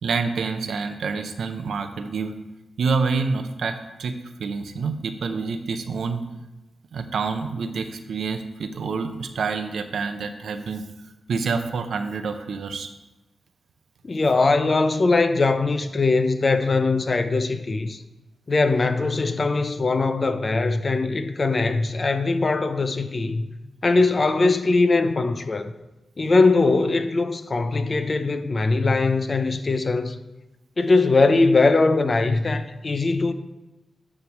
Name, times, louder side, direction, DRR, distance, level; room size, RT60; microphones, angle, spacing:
voice 1, 0.0-2.3 2.8-6.2 6.9-10.8 11.3-12.9, right 4 dB, 80° right, 0.6 m, -27 dB
voice 2, 14.0-18.0 18.5-23.5 23.8-25.7 26.2-30.2 30.8-33.3, left 3 dB, 45° left, 0.6 m, -21 dB
9.6 x 3.3 x 6.0 m
cardioid pair, 65°, 0 cm